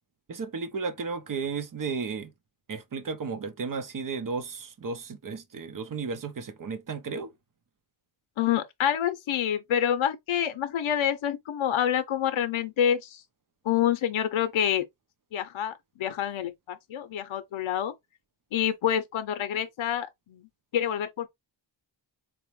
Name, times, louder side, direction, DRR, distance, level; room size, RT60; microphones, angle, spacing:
voice 1, 0.3-2.3 2.7-7.3, right 4 dB, 45° right, 0.6 m, -34 dB
voice 2, 8.4-13.2 13.6-14.8 15.3-17.9 18.5-20.5 20.7-21.3, left 10 dB, 85° left, 0.6 m, -27 dB
4.1 x 2.1 x 3.0 m
wide cardioid pair, 135°, 47 cm